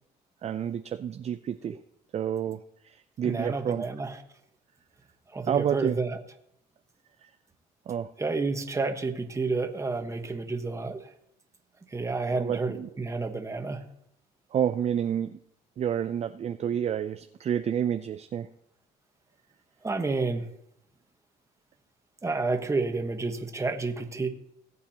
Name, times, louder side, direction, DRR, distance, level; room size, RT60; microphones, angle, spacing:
voice 1, 0.4-1.8 2.1-3.8 5.5-6.0 7.9-8.1 12.3-12.9 14.5-15.4 15.8-18.5, right 9 dB, 40° right, 9 dB, 0.5 m, -29 dB
voice 2, 3.2-4.2 5.3-6.2 8.2-11.0 11.9-13.8 19.8-20.5 22.2-24.3, right 3 dB, 15° right, 5 dB, 1.3 m, -30 dB
19.0 x 8.4 x 2.9 m, 0.74 s
cardioid pair, 110°, 17 cm